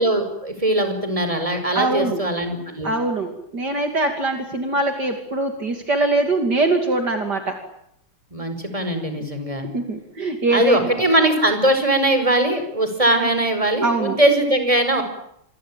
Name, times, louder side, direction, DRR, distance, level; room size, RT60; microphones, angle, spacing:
voice 1, 0.0-2.9 8.3-9.7 10.5-15.0, right 1 dB, 15° right, 8 dB, 5.5 m, -20 dB
voice 2, 1.7-2.2 2.8-7.6 9.6-10.9 13.8-14.2, right 2 dB, 55° right, 5 dB, 3.2 m, -22 dB
27.5 x 22.5 x 9.0 m, 0.75 s
omnidirectional pair, 2.2 m